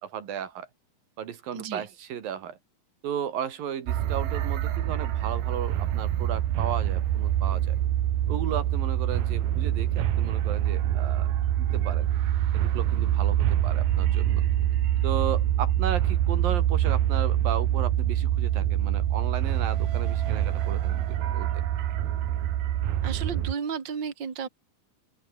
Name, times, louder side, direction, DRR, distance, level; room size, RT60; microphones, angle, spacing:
voice 1, 0.0-0.7 1.2-2.6 3.0-7.8 8.3-11.3 11.6-12.1 12.5-14.4 15.0-21.7, right 9 dB, 75° right, 4.0 m, -35 dB
voice 2, 1.5-1.9 23.0-24.5, right 6 dB, 35° right, 3.0 m, -33 dB
sound 1, 3.9-23.5, right 12 dB, 90° right, 3.6 m, -25 dB
open air
omnidirectional pair, 4.2 m